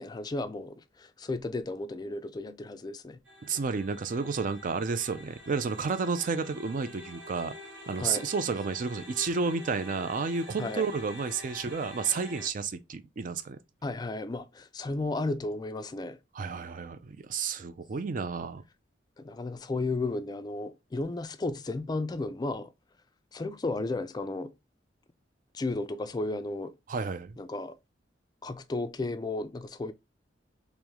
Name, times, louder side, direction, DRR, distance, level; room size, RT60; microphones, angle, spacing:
voice 1, 0.0-3.2 8.0-8.3 10.6-10.9 13.8-16.2 19.2-22.7 23.3-24.5 25.5-26.7 27.4-27.8 28.4-29.9, left 2 dB, 20° left, 0.3 m, -34 dB
sound 1, 3.3-12.5, left 1 dB, 75° right, 1.1 m, -47 dB
voice 2, 3.4-7.5 7.9-13.6 16.3-18.6 26.9-27.4, right 5 dB, 45° right, 0.4 m, -31 dB
3.1 x 3.0 x 3.5 m
head